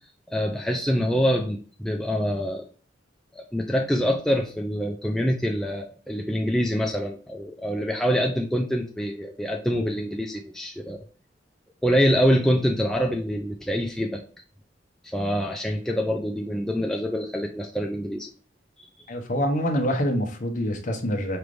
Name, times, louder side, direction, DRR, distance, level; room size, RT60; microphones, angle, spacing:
voice 1, 0.3-2.6 3.3-11.0 11.8-14.2 15.0-18.3 18.8-18.9, equal, ahead, 1 dB, 0.3 m, -25 dB
voice 2, 19.1-21.4, equal, 45° left, 4 dB, 0.8 m, -25 dB
4.7 x 2.5 x 3.3 m, 0.41 s
head